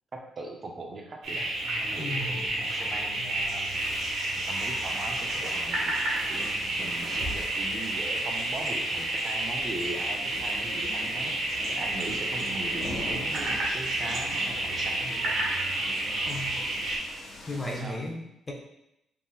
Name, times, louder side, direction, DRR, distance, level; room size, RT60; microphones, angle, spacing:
voice 1, 0.1-1.5 1.8-3.8 4.3-6.0 6.3-15.4 15.8-16.0 17.5-18.0, right 2 dB, 40° right, 1 dB, 0.6 m, -40 dB
sound 1, 1.2-17.0, right 1 dB, 75° right, 1.2 m, -30 dB
voice 2, 2.0-2.4 10.9-11.0 16.3-16.6 17.5-18.5, left 1 dB, 25° left, 1 dB, 0.7 m, -35 dB
sound 2, 3.7-17.8, left 1 dB, 70° left, 1.3 m, -44 dB
3.8 x 3.7 x 2.4 m, 0.84 s
cardioid pair, 90°, 0 cm